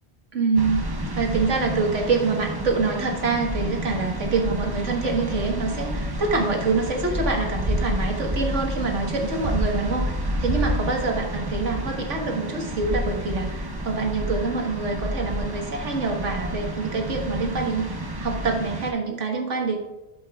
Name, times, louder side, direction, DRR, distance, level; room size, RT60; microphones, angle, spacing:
voice 1, 0.3-10.1 10.4-17.8 18.2-19.8, right 4 dB, 80° right, 1 dB, 1.7 m, -26 dB
sound 1, 0.5-18.9, equal, 25° right, 0.6 m, -29 dB
11.5 x 7.5 x 2.3 m, 1.0 s
omnidirectional pair, 1.2 m